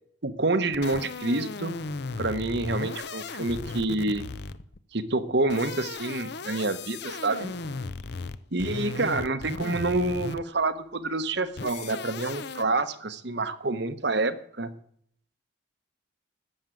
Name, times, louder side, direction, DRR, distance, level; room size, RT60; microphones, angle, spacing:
voice 1, 0.2-1.7 2.2-4.2 4.9-7.5 8.5-14.7, right 2 dB, 55° right, 12 dB, 1.0 m, -28 dB
sound 1, 0.7-4.8 5.4-10.6 11.6-12.6, left 4 dB, 55° left, 0.7 m, -36 dB
13.5 x 7.3 x 9.1 m, 0.65 s
head